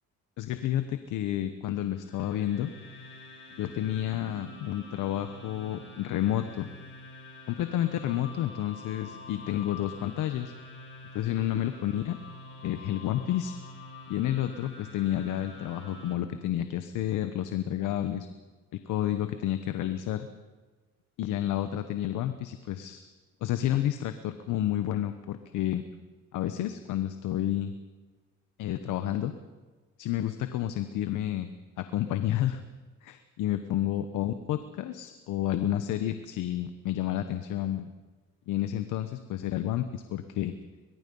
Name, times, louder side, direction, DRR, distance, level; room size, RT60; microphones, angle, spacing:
voice 1, 0.4-2.7 3.6-6.7 7.5-10.5 11.1-12.2 12.6-13.5 14.1-18.3 18.7-20.3 21.2-23.1 23.4-25.8 26.3-27.7 28.6-29.3 30.0-31.5 31.8-32.6 33.0-37.9 38.5-40.5, left 12 dB, 90° left, 10 dB, 1.1 m, -30 dB
sound 1, 1.8-16.1, left 2 dB, 40° left, 5.8 m, -47 dB
22.0 x 21.5 x 5.5 m, 1.3 s
cardioid pair, 90°, 30 cm